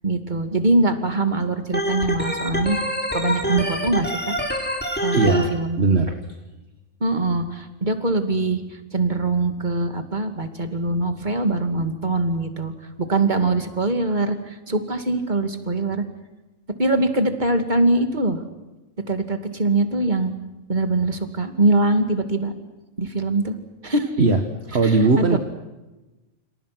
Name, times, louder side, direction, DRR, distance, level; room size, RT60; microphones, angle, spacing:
voice 1, 0.0-2.8 3.1-4.4 5.0-5.8 7.0-8.6 8.9-12.7 13.0-14.4 14.7-16.0 16.8-18.4 19.1-20.3 20.7-22.5 23.0-23.6 23.8-24.1 24.8-25.0 25.3-25.4, right 2 dB, 35° right, 7 dB, 2.7 m, -22 dB
Organ, 1.7-5.4, equal, 5° left, 3.4 m, -25 dB
voice 2, 5.1-5.5 5.8-6.2 24.2-24.4 24.7-25.4, right 3 dB, 50° right, 5 dB, 1.9 m, -18 dB
29.0 x 27.5 x 6.1 m, 1.1 s
omnidirectional pair, 1.4 m